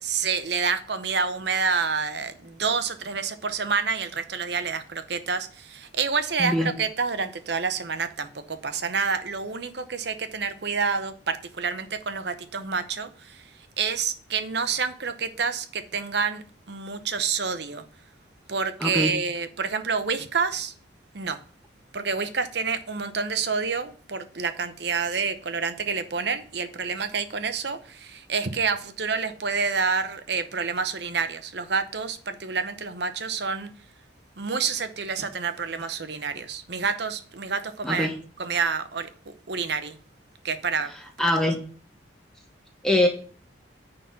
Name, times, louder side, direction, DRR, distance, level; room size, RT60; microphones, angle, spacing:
voice 1, 0.0-13.4 13.8-17.8 18.5-20.7 21.1-21.4 21.9-33.7 34.4-40.0 40.4-40.9, right 5 dB, 60° right, 0.8 m, -28 dB
voice 2, 6.4-6.7 18.8-19.1 37.8-38.1 41.2-41.6 42.8-43.1, left 1 dB, 5° left, 0.9 m, -22 dB
9.5 x 4.0 x 5.6 m
head